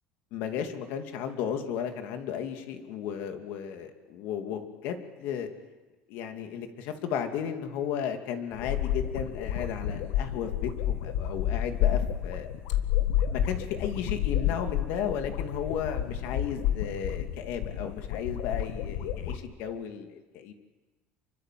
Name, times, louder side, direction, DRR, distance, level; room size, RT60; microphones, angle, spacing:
voice 1, 0.3-5.5 6.1-12.5 13.2-20.5, left 8 dB, 65° left, 6 dB, 2.7 m, -34 dB
sound 1, 8.5-19.4, left 11 dB, 85° left, 2.1 m, -30 dB
26.5 x 23.5 x 7.7 m, 1.2 s
cardioid pair, 150°, 4 cm